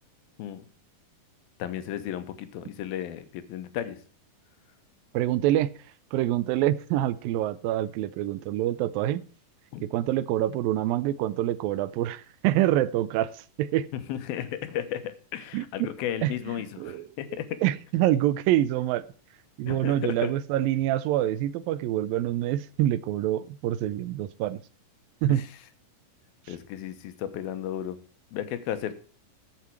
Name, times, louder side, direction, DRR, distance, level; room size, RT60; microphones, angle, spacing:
voice 1, 1.6-4.0 9.7-9.8 13.9-17.6 19.7-20.3 25.3-25.5 26.5-28.0 28.3-28.9, left 10 dB, 90° left, 2.9 m, -34 dB
voice 2, 5.1-5.7 6.1-9.2 9.8-13.9 15.5-15.7 16.2-17.1 17.6-19.0 19.6-24.6 25.2-25.4, right 13 dB, 85° right, 2.4 m, -26 dB
14.5 x 7.5 x 4.6 m
omnidirectional pair, 4.1 m